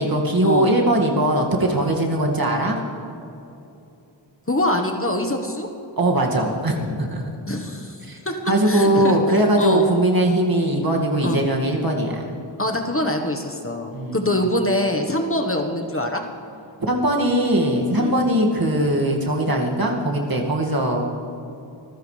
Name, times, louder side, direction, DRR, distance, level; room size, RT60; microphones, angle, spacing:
voice 1, 0.0-2.8 6.0-7.2 8.0-8.2 8.5-12.3 13.9-14.3 16.8-21.1, right 1 dB, 50° right, 0 dB, 2.2 m, -20 dB
voice 2, 4.5-5.7 7.5-8.0 8.2-8.3 8.7-9.9 11.2-11.4 12.6-16.2 18.0-18.2, left 1 dB, 30° left, 3 dB, 1.4 m, -24 dB
25.0 x 15.0 x 3.4 m, 2.8 s
wide cardioid pair, 75°, 46 cm